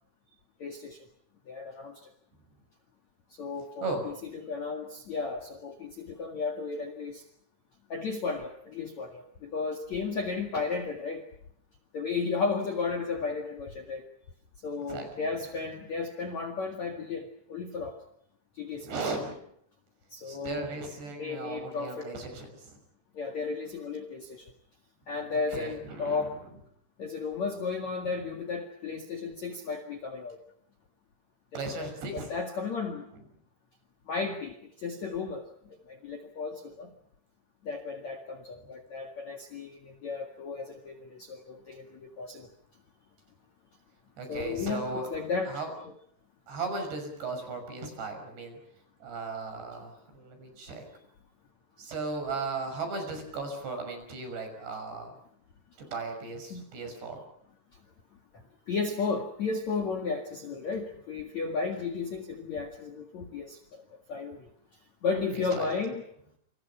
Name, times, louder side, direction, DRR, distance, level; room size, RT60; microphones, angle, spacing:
voice 1, 0.6-1.1 1.5-2.1 3.3-7.2 7.9-11.3 11.9-14.0 14.6-18.0 18.6-18.9 20.1-20.8 21.2-22.1 23.1-24.5 25.1-26.4 27.0-30.4 31.5-33.1 34.1-36.9 37.6-42.5 44.3-45.6 56.5-56.7 58.7-63.8 64.1-64.5 65.0-66.0, left 4 dB, 50° left, 4 dB, 2.3 m, -34 dB
voice 2, 14.9-15.3 18.8-19.3 20.2-22.8 25.3-26.3 31.5-32.3 44.2-45.1 45.5-45.7 46.5-48.6 49.0-50.9 51.8-55.2 55.8-57.2 65.3-65.7, right 3 dB, 55° right, 6 dB, 8.0 m, -36 dB
28.5 x 27.0 x 5.8 m, 0.70 s
omnidirectional pair, 5.8 m